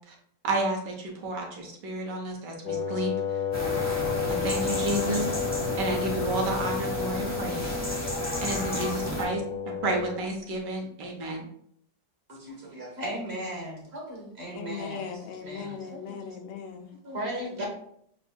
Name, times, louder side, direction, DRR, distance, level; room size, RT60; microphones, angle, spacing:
voice 1, 0.4-3.4 4.3-5.3 5.8-7.7 8.4-9.4 9.8-11.5 17.6-17.7, right 2 dB, 65° right, 1 dB, 1.4 m, -31 dB
Wind instrument woodwind instrument, 2.6-10.3, left 7 dB, 50° left, 1.0 m, -32 dB
sound 1, 3.5-9.2, equal, 5° left, 0.8 m, -32 dB
voice 2, 12.3-15.0 15.4-16.2 17.0-17.7, equal, 40° right, -2 dB, 1.1 m, -36 dB
voice 3, 14.5-16.9, left 6 dB, 85° left, 4 dB, 1.4 m, -38 dB
6.4 x 2.6 x 2.2 m, 0.67 s
omnidirectional pair, 2.1 m